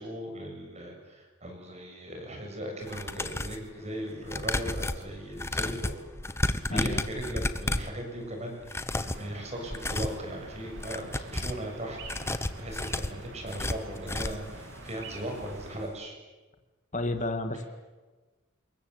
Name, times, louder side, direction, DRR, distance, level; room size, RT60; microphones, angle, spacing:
voice 1, 0.0-6.0 6.3-6.4 6.7-12.0 12.3-16.2, right 1 dB, 30° right, 2 dB, 7.1 m, -38 dB
sound 1, 2.8-3.6 4.2-8.0 8.6-9.3 9.7-10.2 10.7-11.6 12.0-14.5 14.9-15.0 15.3-15.4, left 1 dB, 10° left, 0.9 m, -32 dB
voice 2, 6.7-7.0 16.9-17.6, left 2 dB, 35° left, 7 dB, 2.1 m, -31 dB
sound 2, 8.9-15.9, right 2 dB, 60° right, 3.6 m, -46 dB
28.0 x 22.5 x 8.3 m, 1.2 s
head